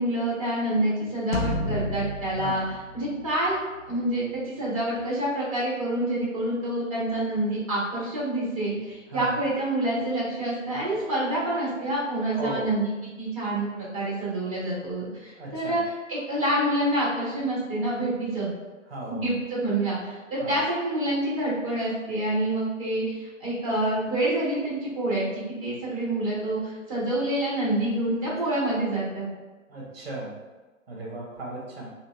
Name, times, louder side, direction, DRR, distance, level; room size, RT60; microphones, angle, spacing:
voice 1, 0.0-2.6 2.9-3.6 3.9-12.9 13.2-15.8 16.1-18.5 19.1-29.2, right 1 dB, 25° right, -6 dB, 0.9 m, -27 dB
sound 1, 1.3-3.9, left 1 dB, 50° left, 0.4 m, -31 dB
voice 2, 9.1-9.5 12.4-12.7 15.4-15.8 18.9-19.3 20.4-20.6 28.3-28.5 29.7-30.4 30.9-31.9, right 2 dB, 50° right, -4 dB, 1.0 m, -36 dB
2.8 x 2.7 x 2.2 m, 1.2 s
figure-of-eight pair, 155°, 40 cm